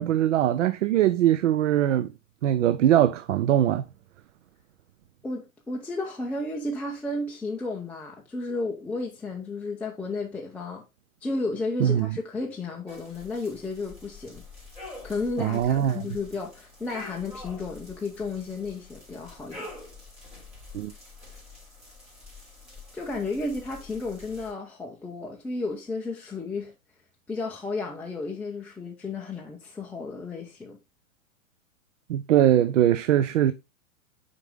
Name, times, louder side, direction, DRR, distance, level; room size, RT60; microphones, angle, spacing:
voice 1, 0.0-2.1 2.4-3.8 11.8-12.1 15.4-16.0 20.7-20.9 32.1-33.5, right 11 dB, 60° right, 0.6 m, -21 dB
voice 2, 5.2-10.9 11.2-14.4 15.0-19.7 22.9-26.7 27.3-30.8, left 3 dB, 5° left, 0.5 m, -33 dB
sound 1, 12.9-24.5, left 3 dB, 15° right, 3.4 m, -46 dB
5.9 x 4.9 x 3.6 m
hypercardioid pair, 120°, 42 cm